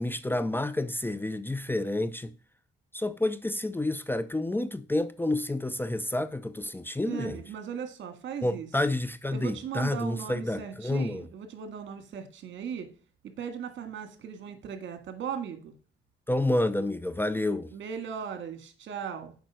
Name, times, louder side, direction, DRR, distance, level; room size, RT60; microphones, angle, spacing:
voice 1, 0.0-2.3 2.9-7.4 8.4-11.3 16.3-17.7, left 1 dB, 10° left, 0.6 m, -29 dB
voice 2, 7.0-8.7 9.3-12.9 13.2-15.7 17.7-19.3, right 7 dB, 70° right, 1.9 m, -38 dB
8.0 x 5.2 x 6.2 m
cardioid pair, 90°, 20 cm